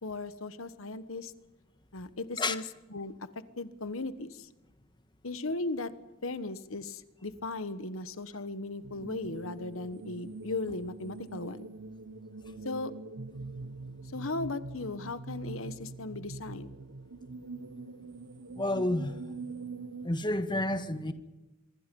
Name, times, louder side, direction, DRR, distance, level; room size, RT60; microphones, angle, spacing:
voice 1, 0.0-1.3 1.9-2.6 2.9-3.1 3.6-4.5 5.2-5.9 6.2-11.6 12.6-12.9 14.1-16.7, left 3 dB, 75° left, 1.2 m, -37 dB
sound 1, 8.8-20.1, right 3 dB, 75° right, 1.3 m, -43 dB
voice 2, 18.6-19.2 19.5-19.6 20.0-21.1, left 1 dB, 20° left, 1.6 m, -30 dB
26.0 x 23.0 x 5.4 m
head